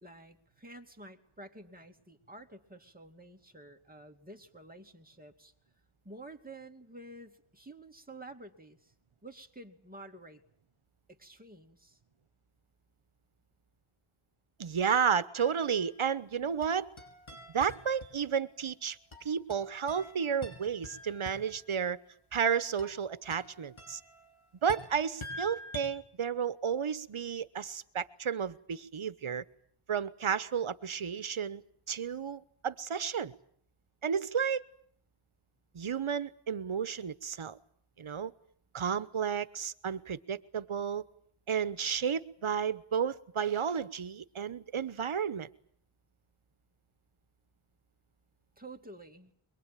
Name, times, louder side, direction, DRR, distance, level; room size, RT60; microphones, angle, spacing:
voice 1, 0.0-5.5 6.0-8.9 9.2-10.4 11.1-12.0 48.6-49.3, right 2 dB, 15° right, 2.6 m, -50 dB
voice 2, 14.6-16.9 17.5-19.0 19.2-22.0 22.3-24.0 24.6-29.4 29.9-31.6 31.9-33.3 34.0-34.6 35.7-37.6 38.0-38.3 38.7-41.0 41.5-45.5, right 7 dB, 75° right, 1.2 m, -32 dB
sound 1, 15.3-16.2 16.6-18.6 19.1-21.8 22.8-25.9, left 1 dB, 70° left, 5.9 m, -47 dB
23.5 x 22.0 x 9.1 m
wide cardioid pair, 70°, 50 cm